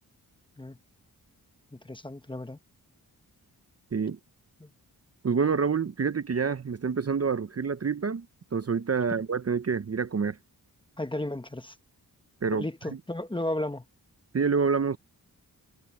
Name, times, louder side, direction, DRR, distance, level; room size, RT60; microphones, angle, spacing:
voice 1, 1.7-2.6 4.6-4.7 11.0-11.7 12.5-13.8, left 1 dB, 15° left, 1.1 m, -34 dB
voice 2, 5.2-8.3 8.5-10.4 12.4-13.0 14.3-15.0, right 5 dB, 40° right, 0.8 m, -27 dB
wide cardioid pair, 80°, 38 cm